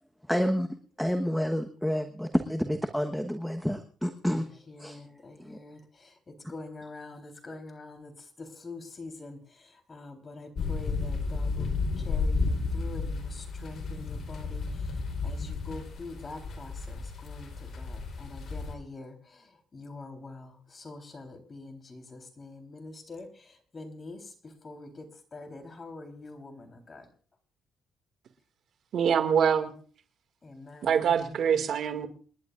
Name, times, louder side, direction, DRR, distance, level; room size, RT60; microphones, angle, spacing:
voice 1, 0.2-0.7 1.0-5.6 6.4-6.5 6.8-6.9, equal, ahead, 1.2 m, -30 dB
voice 2, 4.8-6.1 6.5-8.1 8.4-9.4 9.9-11.7 12.0-14.6 15.2-19.4 19.7-23.3 23.7-24.2 24.6-27.1 30.4-30.9, left 3 dB, 35° left, 3.8 m, -44 dB
sound 1, 10.5-18.7, left 4 dB, 55° left, 3.9 m, -32 dB
voice 3, 28.9-29.7 30.8-32.1, right 7 dB, 70° right, 2.2 m, -24 dB
28.0 x 11.5 x 2.5 m
supercardioid pair, 70°, 0 cm